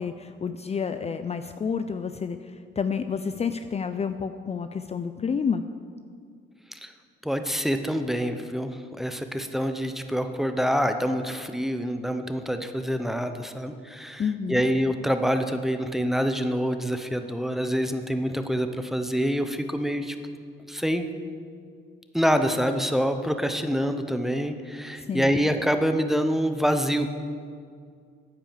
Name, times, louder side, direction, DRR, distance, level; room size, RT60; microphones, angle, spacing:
voice 1, 0.0-5.6 14.2-14.7 25.1-25.3, left 6 dB, 30° left, 9 dB, 0.5 m, -29 dB
voice 2, 7.2-20.1 20.7-21.1 22.1-27.1, equal, ahead, 8 dB, 0.9 m, -26 dB
9.9 x 8.9 x 7.4 m, 2.2 s
cardioid pair, 90°, 20 cm